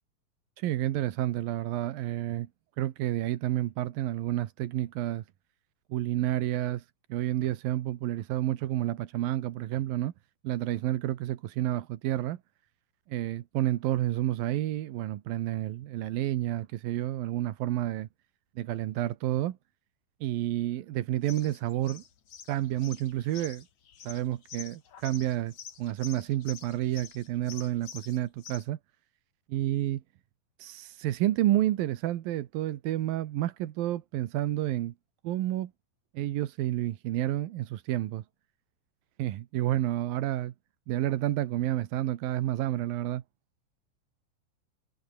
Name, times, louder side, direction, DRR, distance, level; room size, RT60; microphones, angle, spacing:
voice 1, 0.6-2.5 2.8-5.2 5.9-10.1 10.4-12.4 13.1-18.1 18.6-19.6 20.2-22.0 22.5-23.7 24.0-28.8 29.5-30.0 30.6-34.9 35.2-35.7 36.1-38.3 39.2-40.5 40.9-43.2, right 14 dB, 85° right, 3.0 m, -30 dB
sound 1, 21.2-28.6, left 8 dB, 60° left, 3.5 m, -47 dB
omnidirectional pair, 4.0 m